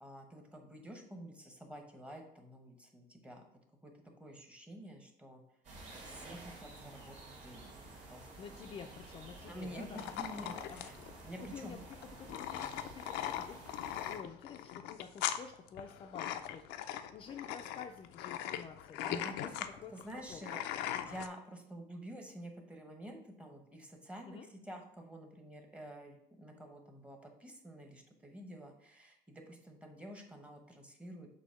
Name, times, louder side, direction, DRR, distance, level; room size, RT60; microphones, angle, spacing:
voice 1, 0.0-3.4 3.8-3.9 4.2-5.4 6.2-7.7 8.1-8.6 9.4-11.0 11.2-11.8 19.0-19.5 19.9-20.6 21.0-24.4 24.6-31.3, right 1 dB, 5° right, 3 dB, 0.9 m, -49 dB
sound 1, 5.6-14.2, right 2 dB, 45° right, 2.0 m, -52 dB
voice 2, 8.4-10.0 10.7-10.9 11.4-13.6 13.9-19.5 19.8-20.4 24.2-24.5, left 7 dB, 30° left, 3 dB, 0.4 m, -50 dB
sound 2, 10.0-21.3, left 11 dB, 90° left, 0.5 m, -40 dB
7.0 x 2.7 x 5.7 m, 0.74 s
cardioid pair, 150°, 17 cm